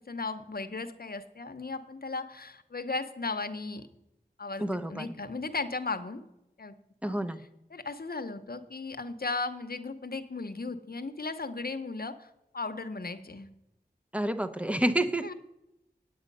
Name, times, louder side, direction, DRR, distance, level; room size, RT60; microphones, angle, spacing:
voice 1, 0.0-3.9 4.4-6.2 6.6-6.7 7.1-7.2 7.7-12.3 12.5-13.5 15.2-15.3, left 3 dB, 65° left, 9 dB, 0.8 m, -36 dB
voice 2, 4.6-5.2 7.0-7.4 14.1-15.3, right 1 dB, 5° right, 10 dB, 0.7 m, -29 dB
9.0 x 8.8 x 5.4 m, 0.89 s
wide cardioid pair, 40°, 17 cm